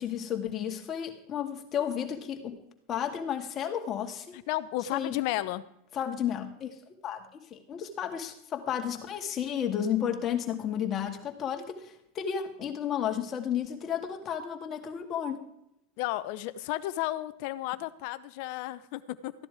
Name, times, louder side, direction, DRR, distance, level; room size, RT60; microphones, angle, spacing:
voice 1, 0.0-2.6 2.9-4.3 4.9-5.2 5.9-6.8 7.0-15.5, left 9 dB, 35° left, 4 dB, 2.2 m, -32 dB
voice 2, 4.3-5.6 16.0-19.3, left 16 dB, 60° left, 14 dB, 0.8 m, -33 dB
14.5 x 10.5 x 4.9 m, 0.78 s
hypercardioid pair, 100°, 0 cm